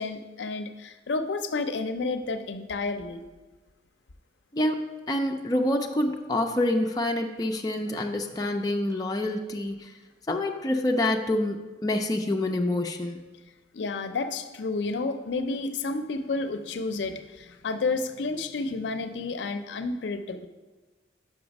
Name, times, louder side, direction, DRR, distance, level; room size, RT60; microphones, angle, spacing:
voice 1, 0.0-3.2 13.7-20.5, left 3 dB, 80° left, 9 dB, 0.5 m, -31 dB
voice 2, 4.5-9.9 10.3-13.2, left 1 dB, 20° left, 2 dB, 0.4 m, -27 dB
5.9 x 5.4 x 5.2 m, 1.2 s
head